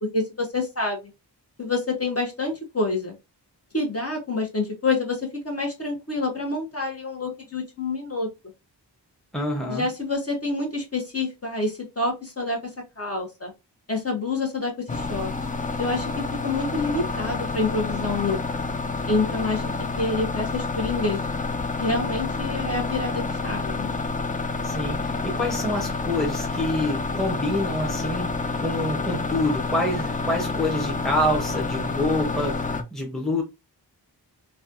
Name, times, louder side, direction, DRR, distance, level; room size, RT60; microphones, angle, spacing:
voice 1, 0.1-1.1 1.6-3.1 3.7-8.3 9.7-13.5 13.9-15.3 15.8-18.4 19.1-21.2 21.8-23.9, left 3 dB, 35° left, 1.1 m, -27 dB
voice 2, 9.3-9.9 24.6-28.3 28.6-33.4, left 1 dB, ahead, 0.9 m, -27 dB
sound 1, 14.9-32.8, left 3 dB, 20° left, 0.5 m, -28 dB
3.2 x 2.3 x 2.5 m
cardioid pair, 50°, 42 cm